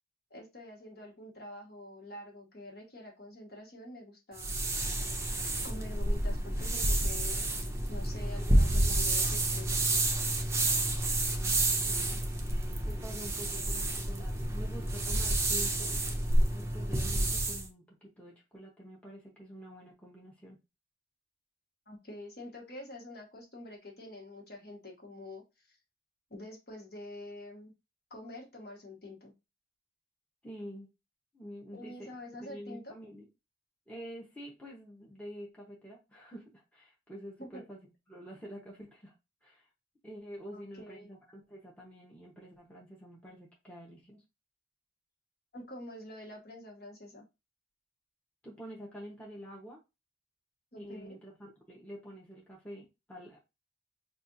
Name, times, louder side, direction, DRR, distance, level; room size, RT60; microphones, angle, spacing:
voice 1, 0.3-4.5 5.6-7.5 7.9-9.8 21.9-25.4 26.3-27.7 28.1-29.3 31.7-32.9 37.4-37.6 40.5-41.1 45.5-47.2 50.7-51.1, left 1 dB, 55° left, -1 dB, 1.4 m, -46 dB
sound 1, 4.4-17.7, right 1 dB, 15° right, 0.6 m, -29 dB
voice 2, 11.3-12.2 12.9-15.9 16.5-20.6 30.4-30.9 31.3-33.3 33.9-37.8 38.1-39.1 39.4-39.6 40.0-44.2 48.4-49.8 50.8-53.4, equal, 5° left, -3 dB, 1.0 m, -47 dB
5.3 x 2.4 x 2.6 m, 0.25 s
head